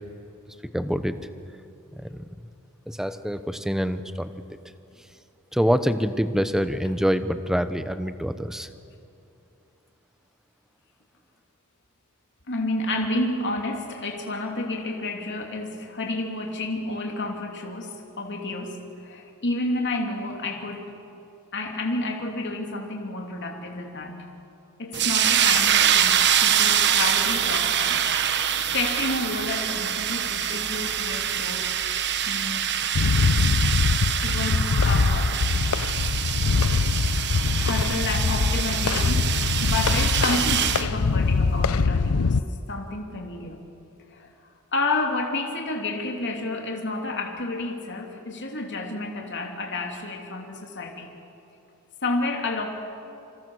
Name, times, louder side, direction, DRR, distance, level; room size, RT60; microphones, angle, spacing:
voice 1, 0.7-1.2 1.9-2.2 2.9-4.3 5.5-8.7, equal, ahead, 10 dB, 0.9 m, -25 dB
voice 2, 12.5-20.9 21.5-24.3 24.8-31.8 32.3-32.7 34.2-35.3 37.1-37.2 37.6-42.4 42.7-43.6 44.1-44.3 44.7-51.1 52.0-52.7, left 2 dB, 55° left, 1 dB, 2.9 m, -30 dB
sound 1, 24.9-40.9, right 9 dB, 50° right, 1.1 m, -24 dB
sound 2, 32.9-42.4, left 4 dB, 85° left, 0.7 m, -23 dB
27.5 x 26.5 x 6.4 m, 2.7 s
head